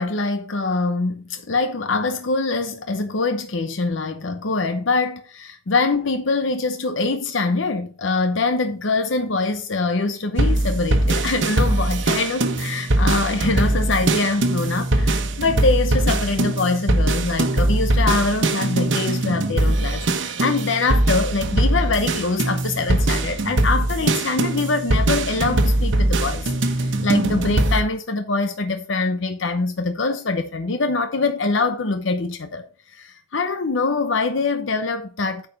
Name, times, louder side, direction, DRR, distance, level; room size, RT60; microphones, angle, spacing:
voice 1, 0.0-32.7 32.9-35.5, left 3 dB, 85° left, 0.8 m, -24 dB
sound 1, 10.4-27.8, right 1 dB, 75° right, 1.1 m, -21 dB
9.1 x 4.8 x 5.4 m
head